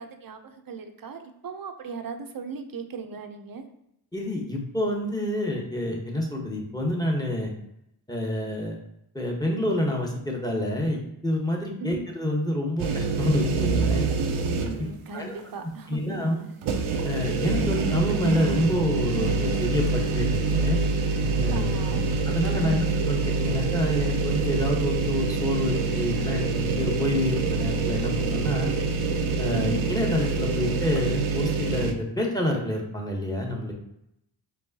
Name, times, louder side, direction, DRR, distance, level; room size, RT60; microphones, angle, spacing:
voice 1, 0.0-3.6 11.8-12.0 14.6-16.2 21.5-22.1 22.5-23.0 29.5-29.8, right 4 dB, 45° right, 7 dB, 0.6 m, -38 dB
voice 2, 4.1-7.5 8.1-8.8 9.1-14.1 14.8-14.9 15.1-15.3 15.9-16.4 17.0-20.8 21.4-21.7 22.3-28.7 29.4-33.7, left 1 dB, 10° left, -1 dB, 1.1 m, -27 dB
sound 1, 12.8-15.0 15.4-15.5 16.6-31.9, right 3 dB, 90° right, 0.6 m, -26 dB
sound 2, 18.1-22.8, right 1 dB, 10° right, 0.4 m, -40 dB
4.6 x 3.0 x 2.8 m, 0.79 s
cardioid pair, 50°, 48 cm